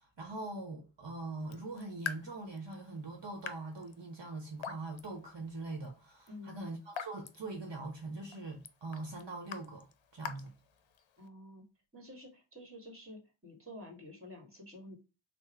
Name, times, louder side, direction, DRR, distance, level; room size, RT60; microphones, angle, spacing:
voice 1, 0.0-9.9 10.1-10.5, right 2 dB, 65° right, 1.0 m, -42 dB
Raindrop / Drip, 1.4-11.3, left 7 dB, 75° left, 0.6 m, -48 dB
voice 2, 6.3-6.6 11.2-11.6 11.9-15.0, left 1 dB, 30° right, 1.6 m, -50 dB
3.6 x 2.1 x 4.3 m
wide cardioid pair, 45°, 46 cm